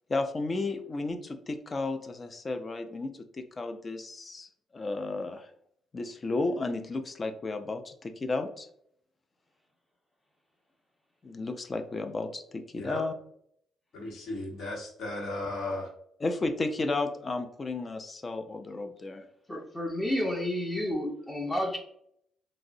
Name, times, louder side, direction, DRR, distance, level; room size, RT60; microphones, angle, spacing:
voice 1, 0.1-5.5 5.9-8.7 11.2-13.1 16.2-19.2, left 3 dB, 30° left, 8 dB, 0.4 m, -33 dB
voice 2, 13.9-15.9, left 2 dB, 65° left, -2 dB, 0.9 m, -35 dB
voice 3, 19.5-21.8, left 1 dB, 10° left, 0 dB, 0.8 m, -30 dB
3.5 x 2.0 x 2.5 m, 0.69 s
cardioid pair, 90°, 0 cm